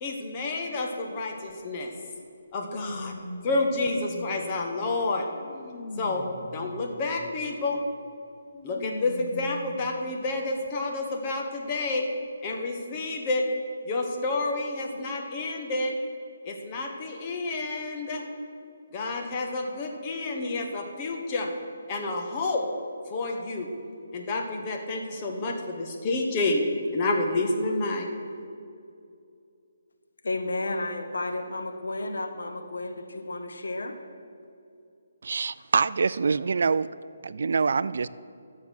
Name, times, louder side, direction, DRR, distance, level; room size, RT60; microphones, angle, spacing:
voice 1, 0.0-1.9 2.5-3.1 3.4-5.3 6.0-6.2 6.5-7.8 8.6-12.1 12.4-13.4 13.8-15.9 16.4-18.2 18.9-21.5 21.9-22.6 23.1-23.7 24.1-26.6 26.9-28.1, left 2 dB, 25° left, 1.3 m, -29 dB
sound 1, 1.5-1.6 2.7-4.7 5.3-7.3 8.5-9.9 10.7-10.8 11.9-12.0, left 1 dB, 50° left, 1.2 m, -41 dB
voice 2, 30.2-34.0, left 2 dB, 85° left, 1.2 m, -32 dB
voice 3, 35.2-36.9 37.2-38.1, right 5 dB, 65° right, 0.3 m, -25 dB
11.5 x 7.2 x 6.5 m
hypercardioid pair, 165°, 0 cm